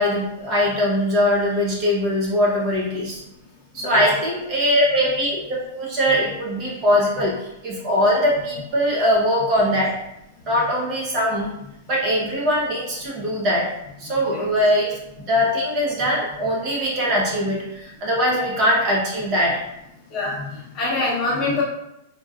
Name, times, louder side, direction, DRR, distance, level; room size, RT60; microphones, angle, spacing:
voice 1, 0.0-3.2 3.7-9.9 10.5-11.5 11.9-13.7 14.0-15.0 15.3-19.6, equal, 25° right, -4 dB, 0.8 m, -21 dB
voice 2, 14.1-14.5 20.1-21.6, left 2 dB, 25° left, -5 dB, 0.9 m, -26 dB
4.5 x 2.8 x 2.4 m, 0.85 s
supercardioid pair, 175°, 0 cm